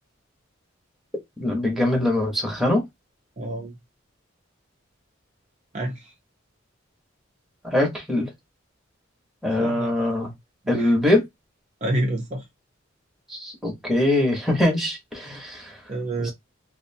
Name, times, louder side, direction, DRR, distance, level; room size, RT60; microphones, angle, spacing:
voice 1, 1.4-2.8 7.6-8.3 9.4-10.3 10.7-11.2 13.3-15.8 16.2-16.3, left 1 dB, ahead, 0.9 m, -23 dB
voice 2, 3.4-3.7 5.7-6.1 9.6-9.9 10.8-10.9 11.8-12.4 15.9-16.3, right 1 dB, 35° right, 0.5 m, -28 dB
2.7 x 2.1 x 2.6 m
head